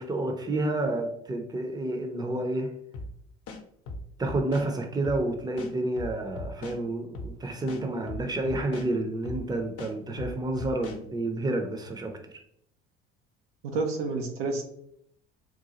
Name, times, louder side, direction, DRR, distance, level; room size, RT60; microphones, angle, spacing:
voice 1, 0.0-2.7 4.2-12.2, right 2 dB, 15° right, 5 dB, 0.6 m, -30 dB
sound 1, 2.9-3.1 3.5-4.7 5.0-5.2 5.6-6.8 7.1-7.3 7.7-8.9 9.2-9.4 9.8-11.0, left 2 dB, 55° left, 0.7 m, -38 dB
voice 2, 13.6-14.6, right 3 dB, 90° right, 2 dB, 0.7 m, -29 dB
3.9 x 2.3 x 2.8 m, 0.71 s
hypercardioid pair, 65°, 29 cm